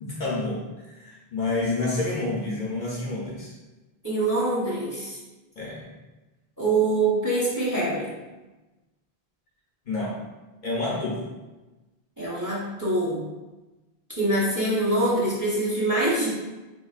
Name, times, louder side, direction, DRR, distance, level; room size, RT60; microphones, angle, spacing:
voice 1, 0.0-3.5 5.6-5.9 9.9-10.1 10.6-11.2, left 2 dB, 55° left, -4 dB, 0.7 m, -29 dB
voice 2, 4.0-5.2 6.6-8.1 12.2-13.2 14.2-16.3, right 2 dB, 20° right, -8 dB, 0.8 m, -24 dB
3.8 x 3.0 x 2.4 m, 1.1 s
omnidirectional pair, 1.0 m